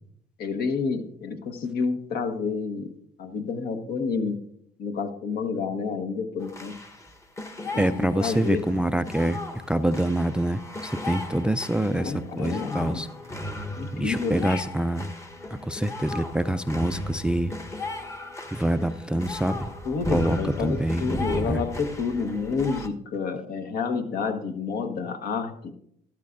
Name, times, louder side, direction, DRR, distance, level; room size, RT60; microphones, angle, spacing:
voice 1, 0.4-4.4 4.8-6.8 7.7-8.6 11.9-13.1 13.8-14.6 19.8-25.7, left 5 dB, 65° left, 7 dB, 1.2 m, -29 dB
sound 1, 6.4-22.9, left 1 dB, 15° left, 1.0 m, -36 dB
voice 2, 7.8-9.4 9.7-13.1 13.9-15.1 15.6-17.5 18.5-19.7 20.1-21.1 21.5-21.6, right 1 dB, 5° right, 13 dB, 0.3 m, -26 dB
12.5 x 12.5 x 2.5 m, 0.71 s
cardioid pair, 110°, 17 cm